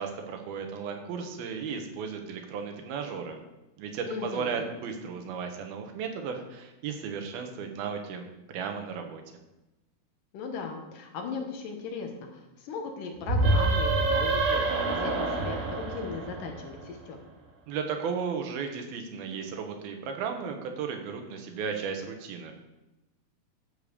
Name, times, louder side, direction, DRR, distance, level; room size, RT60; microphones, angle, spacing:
voice 1, 0.0-3.4 3.8-9.2 17.7-22.5, right 6 dB, 90° right, 5 dB, 3.1 m, -35 dB
voice 2, 4.1-4.7 10.3-14.6 14.9-17.2, left 5 dB, 70° left, 3 dB, 2.7 m, -37 dB
sound 1, 13.2-16.8, right 3 dB, 55° right, 2.4 m, -26 dB
13.0 x 5.2 x 6.7 m, 1.0 s
omnidirectional pair, 4.2 m